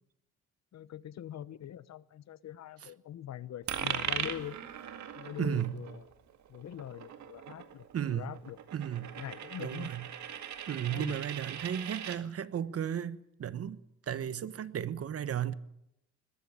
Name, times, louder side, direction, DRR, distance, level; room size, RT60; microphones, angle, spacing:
voice 1, 0.7-4.6 5.2-6.0 6.5-8.6 9.2-9.9 10.9-11.2, left 11 dB, 60° left, 1.0 m, -43 dB
Coin (dropping), 3.7-12.2, right 9 dB, 65° right, 2.1 m, -40 dB
voice 2, 5.4-5.8 7.9-8.4 8.7-9.2 9.6-10.0 10.7-15.5, right 9 dB, 50° right, 1.1 m, -34 dB
20.5 x 14.0 x 9.9 m
cardioid pair, 90°, 30 cm